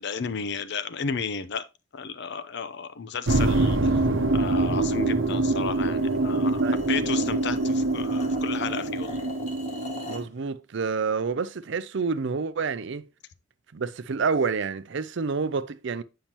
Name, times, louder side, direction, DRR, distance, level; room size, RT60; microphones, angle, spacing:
voice 1, 0.0-1.6 1.9-4.0 4.3-9.2, left 6 dB, 60° left, 0.6 m, -33 dB
sound 1, 3.3-10.2, right 2 dB, 85° right, 0.9 m, -25 dB
sound 2, 6.0-10.3, left 3 dB, 40° left, 1.3 m, -42 dB
voice 2, 10.1-13.1 13.7-16.0, right 5 dB, 65° right, 0.5 m, -28 dB
8.9 x 5.6 x 2.9 m
head